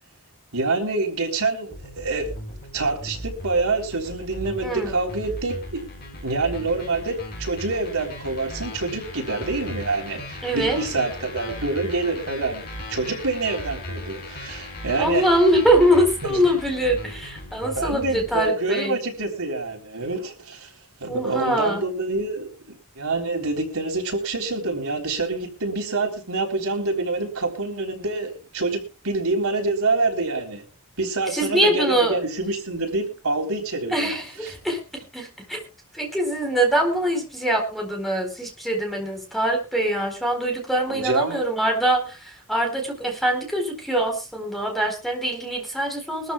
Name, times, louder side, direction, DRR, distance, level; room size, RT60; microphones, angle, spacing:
voice 1, 0.5-2.3 2.7-5.8 6.2-15.3 16.2-16.4 17.8-20.7 21.0-30.6 31.0-34.1 34.4-34.5 40.9-41.4, right 3 dB, 85° right, 2 dB, 3.7 m, -26 dB
sound 1, 1.7-18.4, left 1 dB, 45° left, 5.6 m, -37 dB
voice 2, 4.6-4.9 10.4-10.8 15.0-19.0 21.1-21.8 31.3-32.2 33.9-34.8 35.1-35.6 35.9-46.3, right 1 dB, ahead, 2 dB, 4.2 m, -23 dB
22.5 x 13.5 x 2.3 m, 0.30 s
head